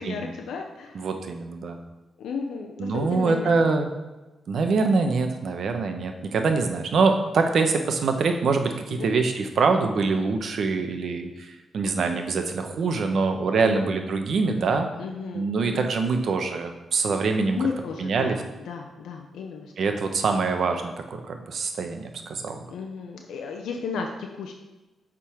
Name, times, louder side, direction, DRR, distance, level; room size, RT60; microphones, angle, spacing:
voice 1, 0.0-1.1 2.2-3.7 8.9-9.1 13.6-13.9 15.0-15.9 17.5-19.9 22.7-24.5, left 5 dB, 85° left, 3 dB, 0.6 m, -34 dB
voice 2, 0.9-1.8 2.8-3.9 4.5-14.9 15.3-17.6 18.0-18.4 19.8-22.6, right 4 dB, 65° right, 5 dB, 0.8 m, -24 dB
8.3 x 3.8 x 4.5 m, 1.1 s
cardioid pair, 70°, 0 cm